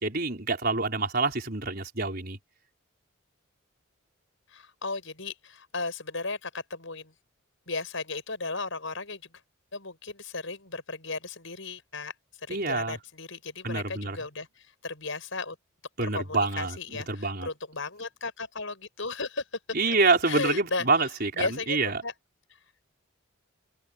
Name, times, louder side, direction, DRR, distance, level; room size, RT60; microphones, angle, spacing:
voice 1, 0.0-2.4 12.5-13.0 13.6-14.2 16.0-17.5 19.7-22.0, right 3 dB, 45° right, 4.7 m, -27 dB
voice 2, 4.5-7.1 7.7-9.2 9.7-12.1 12.5-15.6 16.0-19.4 19.9-20.0 20.2-20.9 21.4-22.1, left 3 dB, 65° left, 5.9 m, -35 dB
open air
head